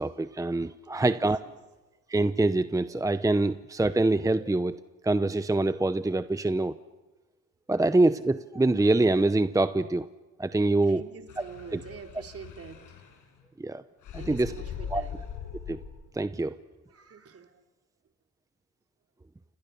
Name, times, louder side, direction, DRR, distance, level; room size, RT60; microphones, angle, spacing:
voice 1, 0.0-1.4 2.1-4.8 5.0-6.7 7.7-10.1 10.4-11.0 11.7-11.8 13.6-13.8 14.1-14.5 14.9-15.0 15.7-15.8 16.2-16.5, right 2 dB, 10° right, 12 dB, 0.8 m, -25 dB
voice 2, 1.0-1.5 10.8-12.8 14.2-15.2 16.9-17.6, right 6 dB, 50° right, 5 dB, 3.6 m, -46 dB
sound 1, 11.3-13.4 14.0-16.1, left 8 dB, 80° left, 6.1 m, -41 dB
29.5 x 28.0 x 6.9 m, 1.2 s
cardioid pair, 90°, 30 cm